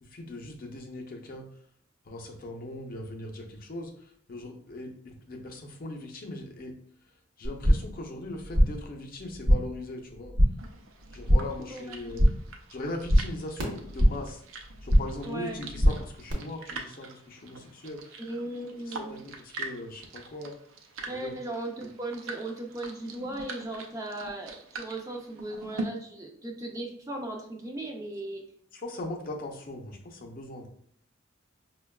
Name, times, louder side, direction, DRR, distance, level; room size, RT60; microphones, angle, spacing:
voice 1, 0.0-1.5 2.0-6.8 7.4-10.3 11.1-12.3 12.7-18.2 18.9-20.6 21.1-21.4 28.7-30.7, left 1 dB, 45° left, 2 dB, 0.5 m, -40 dB
sound 1, 7.4-8.0 8.3-8.9 9.2-9.8 10.1-10.7 11.0-11.6 11.9-12.5 12.8-14.3 14.6-15.3 15.5-16.3, equal, 65° right, 0.9 m, -24 dB
sound 2, 10.6-25.8, right 3 dB, 90° right, 0.5 m, -44 dB
voice 2, 11.7-12.3 15.2-15.6 18.2-19.2 21.1-28.4, right 1 dB, 15° right, 1 dB, 0.4 m, -37 dB
5.2 x 2.2 x 2.2 m, 0.63 s
head